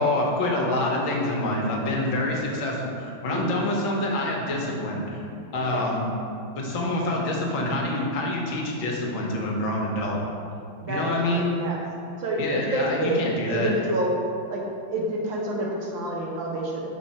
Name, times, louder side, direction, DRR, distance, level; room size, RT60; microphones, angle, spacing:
voice 1, 0.0-5.2 5.5-6.1 6.6-10.2 10.9-11.6 12.4-13.7, left 1 dB, 90° left, -1 dB, 1.7 m, -26 dB
voice 2, 3.3-3.7 5.7-5.8 10.8-11.8 12.2-13.1 13.5-14.1 14.5-14.6 14.9-16.8, right 1 dB, 75° right, -2 dB, 1.7 m, -28 dB
6.4 x 4.3 x 4.2 m, 2.5 s
omnidirectional pair, 2.1 m